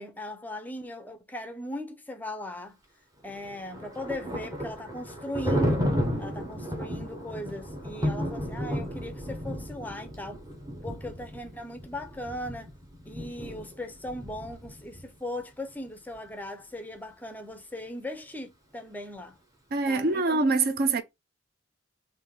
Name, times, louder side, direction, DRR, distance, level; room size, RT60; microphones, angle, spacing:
voice 1, 0.0-2.8 3.2-5.9 6.2-10.4 10.8-12.7 13.1-19.4 19.9-20.2, left 1 dB, 10° left, 0.5 m, -38 dB
Thunder, 3.3-15.1, equal, 20° right, 0.9 m, -33 dB
voice 2, 19.7-21.0, right 3 dB, 50° right, 0.5 m, -24 dB
3.4 x 2.6 x 3.6 m
head